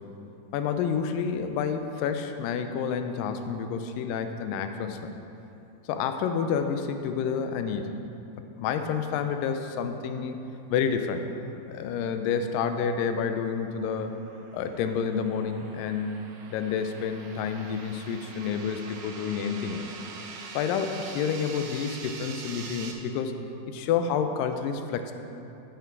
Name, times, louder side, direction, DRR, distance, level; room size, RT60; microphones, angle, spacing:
voice 1, 0.5-5.1 5.9-7.9 8.6-10.4 10.7-11.2 11.7-14.1 14.5-19.9 20.5-23.4 23.7-25.1, left 6 dB, 85° left, 7 dB, 2.3 m, -29 dB
sound 1, 12.5-22.9, right 5 dB, 80° right, 2.4 m, -44 dB
14.0 x 5.9 x 4.6 m, 2.8 s
omnidirectional pair, 3.9 m